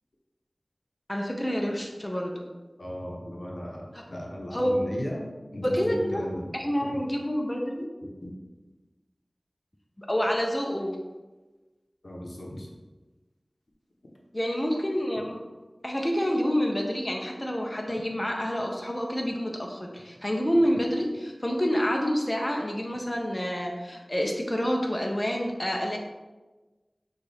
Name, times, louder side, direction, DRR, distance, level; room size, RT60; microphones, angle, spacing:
voice 1, 1.1-2.5 3.9-4.0 4.5-4.7 5.6-6.3 6.5-7.9 10.0-11.0 14.3-15.4 15.8-26.0, equal, 25° left, 1 dB, 0.6 m, -28 dB
voice 2, 2.8-3.8 4.1-6.5 8.2-8.3 12.0-12.7, equal, 75° left, -2 dB, 0.8 m, -36 dB
6.4 x 2.4 x 3.4 m, 1.2 s
wide cardioid pair, 45°, 0 cm